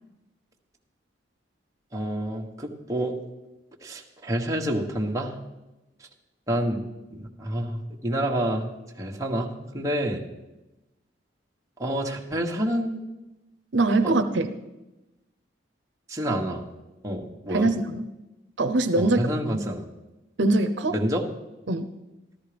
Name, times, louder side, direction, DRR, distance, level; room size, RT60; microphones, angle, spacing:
voice 1, 1.9-3.2 3.8-5.4 6.0-6.1 6.5-6.8 7.1-10.2 11.8-13.0 14.0-14.1 16.1-16.6 17.0-17.7 19.0-19.8 20.9-21.3, right 1 dB, 15° right, 0 dB, 1.4 m, -28 dB
voice 2, 13.7-14.5 17.5-18.0 18.6-19.2 20.4-20.9 21.7-21.9, right 2 dB, 75° right, 7 dB, 0.8 m, -22 dB
14.0 x 13.0 x 5.1 m, 1.0 s
head